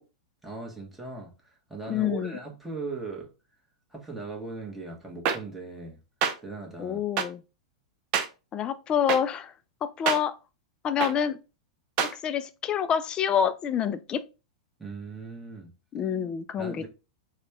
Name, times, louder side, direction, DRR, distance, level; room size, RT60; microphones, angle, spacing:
voice 1, 0.4-3.3 3.9-6.0 6.4-7.0 14.8-15.7 16.6-16.9, right 3 dB, 10° right, 1.3 m, -39 dB
voice 2, 1.9-2.4 6.8-7.4 8.5-9.5 9.8-10.3 10.8-11.4 12.0-14.2 15.9-16.8, left 8 dB, 30° left, 0.4 m, -27 dB
sound 1, 5.3-5.4 6.2-6.3 7.2-7.3 8.1-8.3 9.1-9.2 10.1-10.2 11.0-11.1 12.0-12.1, right 7 dB, 45° right, 0.6 m, -25 dB
4.0 x 2.3 x 3.4 m
hypercardioid pair, 100°, 3 cm